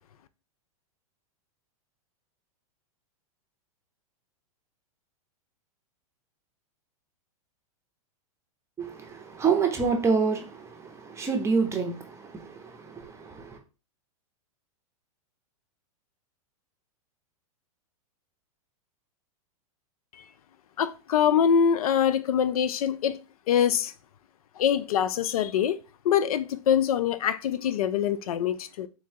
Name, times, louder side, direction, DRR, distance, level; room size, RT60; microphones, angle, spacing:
voice 1, 8.8-13.6, right 5 dB, 15° right, 0.8 m, -28 dB
voice 2, 20.8-23.2 23.5-23.9 24.6-25.8 26.0-28.9, left 8 dB, 80° left, 0.4 m, -24 dB
3.9 x 3.0 x 2.8 m
hypercardioid pair, 125°, 18 cm